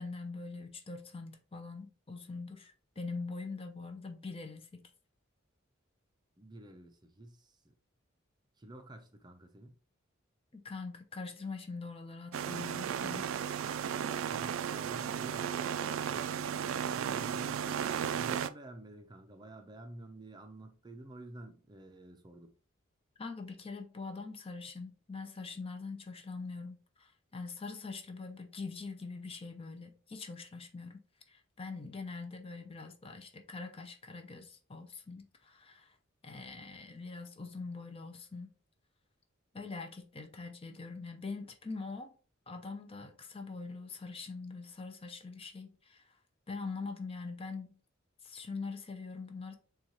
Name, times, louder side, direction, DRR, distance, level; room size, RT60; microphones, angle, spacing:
voice 1, 0.0-4.8 10.5-13.3 23.2-31.0 31.3-36.0 36.2-38.5 39.5-42.1 42.5-46.2 46.5-47.8 48.2-49.6, left 4 dB, 30° left, 0.6 m, -43 dB
voice 2, 6.4-7.6 8.6-9.7 14.3-16.4 16.8-22.5, right 1 dB, 20° right, 0.5 m, -50 dB
sound 1, 12.3-18.5, right 8 dB, 80° right, 0.3 m, -35 dB
6.9 x 2.4 x 3.0 m
head